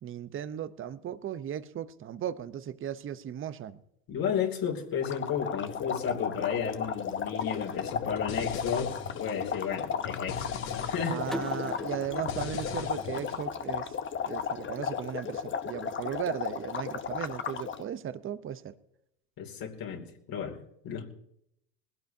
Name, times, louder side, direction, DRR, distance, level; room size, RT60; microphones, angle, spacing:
voice 1, 0.0-3.8 11.0-14.0 14.3-18.8, right 9 dB, 25° right, 0.8 m, -36 dB
voice 2, 4.1-11.3 19.4-20.6 20.8-21.1, left 7 dB, 45° left, 2.9 m, -33 dB
sound 1, 5.0-17.8, left 7 dB, 25° left, 1.0 m, -34 dB
sound 2, 7.4-13.4, left 7 dB, 65° left, 3.1 m, -41 dB
sound 3, 11.3-14.1, left 1 dB, ahead, 0.4 m, -42 dB
20.5 x 16.5 x 2.8 m
hypercardioid pair, 100°, 47 cm